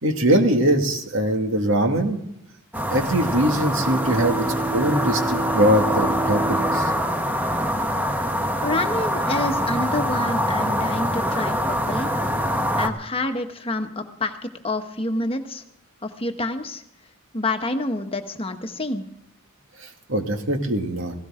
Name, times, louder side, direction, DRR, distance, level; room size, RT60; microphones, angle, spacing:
voice 1, 0.0-2.2 2.9-4.4 4.7-6.9 19.8-21.1, right 1 dB, 70° right, 4 dB, 2.2 m, -22 dB
sound 1, 2.7-12.9, equal, 10° right, 1.2 m, -24 dB
Bowed string instrument, 3.3-8.1, right 3 dB, 45° right, 1.5 m, -30 dB
voice 2, 8.6-12.1 12.8-15.6 16.0-16.8 17.3-19.0, left 2 dB, 25° left, 6 dB, 1.2 m, -27 dB
17.5 x 16.5 x 3.8 m, 0.78 s
head